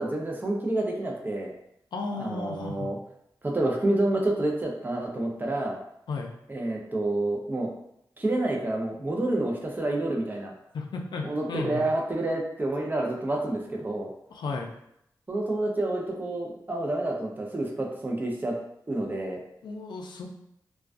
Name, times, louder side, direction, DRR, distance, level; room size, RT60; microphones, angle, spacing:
voice 1, 0.0-1.5 2.1-3.0 3.4-5.8 6.5-7.7 8.2-10.5 11.2-14.1 15.3-18.6 18.9-19.4, right 2 dB, 25° right, 0 dB, 0.6 m, -28 dB
voice 2, 1.9-2.9 6.1-6.3 10.7-11.8 14.3-14.7 19.6-20.3, left 3 dB, 70° left, 2 dB, 0.4 m, -34 dB
2.3 x 2.2 x 2.4 m, 0.76 s
cardioid pair, 50°, 8 cm